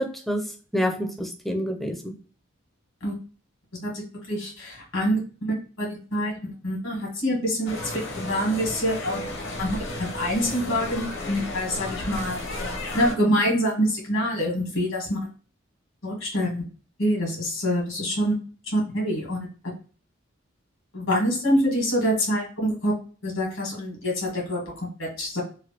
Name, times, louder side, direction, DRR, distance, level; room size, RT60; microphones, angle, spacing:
voice 1, 0.0-2.1, equal, ahead, 3 dB, 0.4 m, -28 dB
voice 2, 4.3-9.2 9.6-12.4 12.9-15.2 16.0-16.6 17.0-18.3 18.7-19.4 20.9-22.9 23.2-25.4, equal, 85° left, -1 dB, 1.5 m, -26 dB
sound 1, 7.7-13.1, left 1 dB, 65° left, 0.7 m, -33 dB
3.1 x 2.3 x 2.8 m, 0.39 s
head